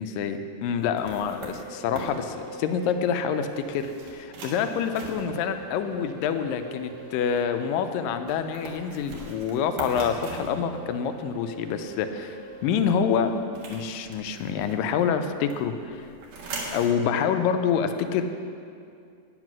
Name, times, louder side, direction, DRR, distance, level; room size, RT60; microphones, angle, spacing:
voice 1, 0.0-12.4 12.6-16.1 16.7-18.2, left 7 dB, 80° left, 8 dB, 2.2 m, -27 dB
sound 1, 0.8-15.2 15.5-16.9, right 3 dB, 65° right, 2.9 m, -41 dB
10.5 x 9.2 x 6.0 m, 2.4 s
omnidirectional pair, 4.1 m